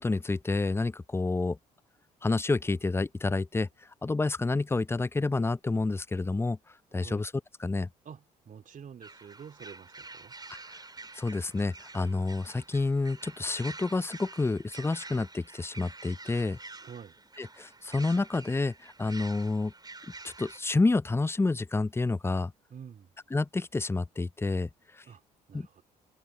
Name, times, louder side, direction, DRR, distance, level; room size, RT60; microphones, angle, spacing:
voice 1, 0.0-1.6 2.2-3.7 4.0-6.6 6.9-7.3 7.6-7.9 11.2-16.6 17.4-19.7 20.2-22.5 23.3-24.7 25.0-25.1 25.5-25.7, left 3 dB, 10° left, 0.6 m, -29 dB
voice 2, 6.9-7.2 8.0-10.3 16.8-17.2 22.7-23.1 25.0-25.2 25.5-25.8, right 7 dB, 40° right, 3.2 m, -48 dB
sound 1, 9.0-20.6, right 3 dB, 20° right, 4.1 m, -48 dB
figure-of-eight pair, 50°, 20 cm